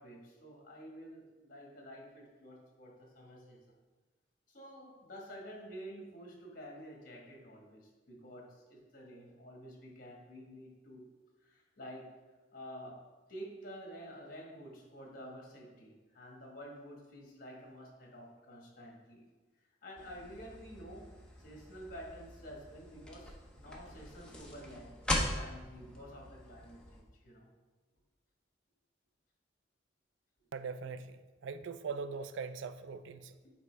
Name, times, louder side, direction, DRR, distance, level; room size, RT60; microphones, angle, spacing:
voice 1, 0.0-3.8 4.5-11.1 11.4-12.2 12.5-19.2 19.8-21.1 21.4-27.5 33.4-33.5, equal, 45° left, -1 dB, 1.5 m, -50 dB
sound 1, 20.0-27.0, left 1 dB, 5° left, 0.7 m, -41 dB
voice 2, 30.5-33.3, right 5 dB, 80° right, 12 dB, 0.4 m, -41 dB
8.0 x 4.7 x 3.3 m, 1.2 s
head